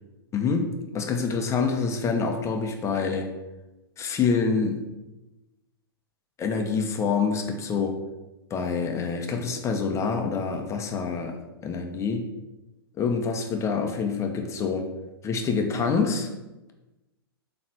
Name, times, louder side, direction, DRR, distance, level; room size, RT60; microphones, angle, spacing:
voice 1, 0.3-3.3 4.0-4.8 6.4-8.0 8.5-11.4 11.6-12.3 13.0-14.9 15.2-16.3, left 5 dB, 20° left, 3 dB, 0.9 m, -26 dB
7.2 x 3.2 x 6.0 m, 1.0 s
hypercardioid pair, 115°, 13 cm